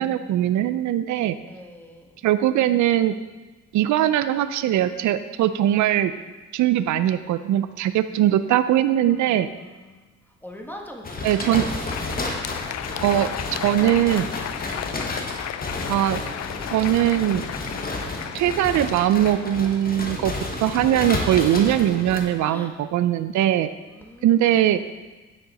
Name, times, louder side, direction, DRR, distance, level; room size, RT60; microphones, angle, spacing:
voice 1, 0.0-1.4 2.2-3.1 3.7-6.1 6.5-9.5 11.2-11.7 13.0-13.3 13.6-14.3 15.9-16.2 16.7-17.4 18.3-20.3 20.6-23.7 24.2-24.8, right 12 dB, 70° right, 12 dB, 0.5 m, -21 dB
voice 2, 1.4-2.1 9.0-12.1 12.9-13.7 22.4-22.7 23.9-24.5, equal, 5° left, 1 dB, 1.5 m, -44 dB
sound 1, 11.0-22.2, left 2 dB, 30° left, 1.4 m, -31 dB
Crowd, 11.4-20.3, left 11 dB, 60° left, 0.5 m, -35 dB
9.5 x 6.6 x 4.2 m, 1.2 s
cardioid pair, 90°, 30 cm